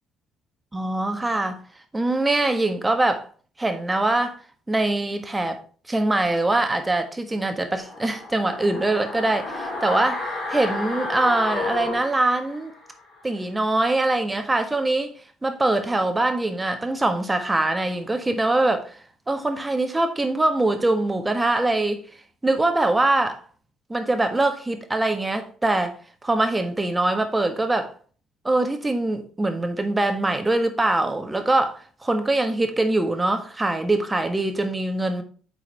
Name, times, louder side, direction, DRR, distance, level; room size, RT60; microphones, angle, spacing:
voice 1, 0.7-1.6 1.9-3.2 3.6-4.4 4.7-5.6 5.9-12.7 13.2-15.1 15.4-19.0 19.3-22.0 22.4-23.4 23.9-26.0 26.2-27.9 28.4-35.2, right 2 dB, 15° right, 1.5 m, -23 dB
sound 1, 7.8-12.9 13.2-13.3, left 3 dB, 45° left, 4.2 m, -31 dB
8.4 x 4.9 x 3.5 m
hypercardioid pair, 50°, 0 cm